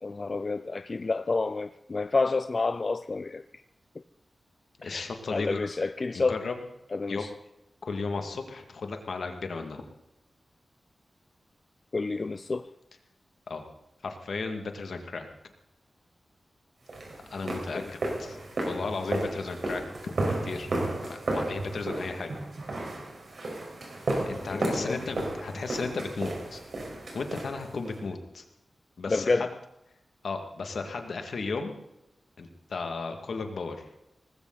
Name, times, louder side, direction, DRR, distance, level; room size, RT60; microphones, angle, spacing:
voice 1, 0.0-3.4 4.8-6.4 6.9-7.3 11.9-12.7 17.7-17.9 24.5-25.0 29.1-29.5, left 3 dB, 40° left, 0.4 m, -29 dB
voice 2, 4.8-5.6 6.1-6.5 7.1-7.3 7.8-9.8 13.5-13.6 14.0-15.3 17.3-17.8 18.2-18.4 18.7-20.7 21.1-22.4 24.3-26.6 27.1-28.4 29.0-29.5 30.2-31.7 32.4-33.8, left 4 dB, 70° left, 2.2 m, -34 dB
sound 1, 16.9-28.0, right 2 dB, 60° right, 4.8 m, -33 dB
19.0 x 15.5 x 4.1 m
wide cardioid pair, 145°, 0 cm